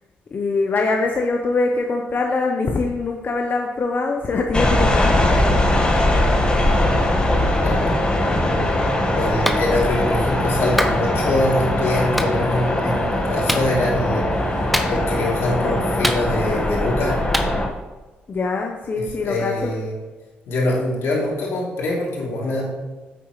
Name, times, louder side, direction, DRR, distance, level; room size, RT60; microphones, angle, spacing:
voice 1, 0.3-5.8 18.3-19.8, left 3 dB, 45° left, 3 dB, 0.9 m, -23 dB
sound 1, 4.5-17.7, left 1 dB, 25° left, 1.6 m, -20 dB
voice 2, 7.6-8.0 9.1-14.5 14.9-17.2 19.0-19.9 20.5-22.6, left 1 dB, 80° left, -4 dB, 3.0 m, -24 dB
Clapping, 9.4-9.6 10.8-11.0 12.2-12.3 13.5-13.7 14.7-15.2 16.0-16.6 17.3-17.5, equal, ahead, 0.9 m, -23 dB
9.3 x 7.8 x 3.2 m, 1.2 s
supercardioid pair, 65°, 4 cm